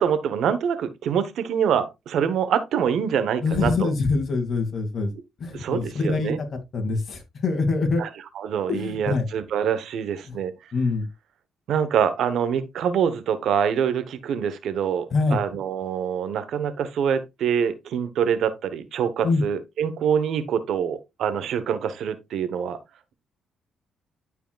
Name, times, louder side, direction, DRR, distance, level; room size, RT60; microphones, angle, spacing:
voice 1, 0.0-3.9 5.5-6.4 8.0-8.1 8.4-10.5 11.7-22.8, right 8 dB, 75° right, 1.0 m, -25 dB
voice 2, 3.4-5.1 5.4-8.0 8.7-9.3 10.3-10.4 10.7-11.1 15.1-15.4 19.2-19.4, left 3 dB, 50° left, 2.3 m, -24 dB
12.5 x 4.8 x 2.4 m
cardioid pair, 90°, 0 cm